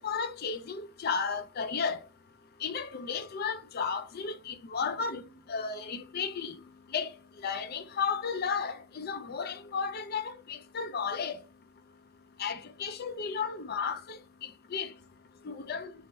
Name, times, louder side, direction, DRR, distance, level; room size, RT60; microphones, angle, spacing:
voice 1, 0.0-2.0 2.6-6.6 6.9-7.1 7.4-11.4 12.4-14.9 15.4-15.9, left 5 dB, 45° left, 0.4 m, -34 dB
4.4 x 3.1 x 3.0 m
head